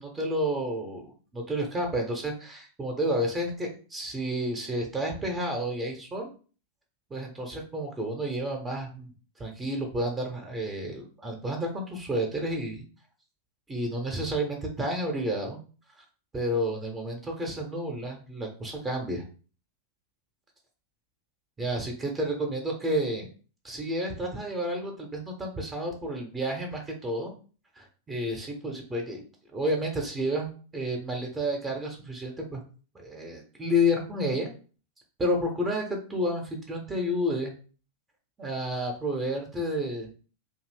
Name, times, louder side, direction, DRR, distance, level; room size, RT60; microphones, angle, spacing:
voice 1, 0.0-6.3 7.1-9.1 9.4-12.8 13.7-15.6 16.3-19.2 21.6-23.3 23.6-27.3 27.8-29.2 29.5-32.6 32.9-34.5 35.2-37.5 38.4-40.2, equal, 15° right, 1 dB, 0.7 m, -30 dB
2.6 x 2.3 x 3.3 m, 0.38 s
figure-of-eight pair, 90°, 0 cm